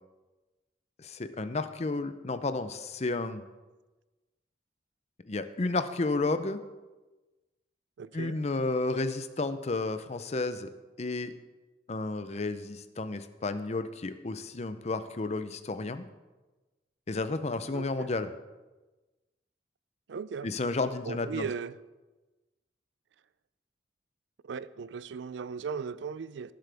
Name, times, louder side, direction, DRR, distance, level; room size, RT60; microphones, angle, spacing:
voice 1, 1.0-3.4 5.3-6.6 8.1-10.7 11.0-11.3 11.9-16.1 17.1-18.3 20.4-21.5, left 3 dB, 35° left, 11 dB, 0.6 m, -32 dB
voice 2, 8.0-8.4 17.7-18.1 20.1-20.5 21.1-21.8 24.4-26.5, right 6 dB, 80° right, 17 dB, 0.4 m, -37 dB
18.5 x 7.6 x 3.5 m, 1.2 s
head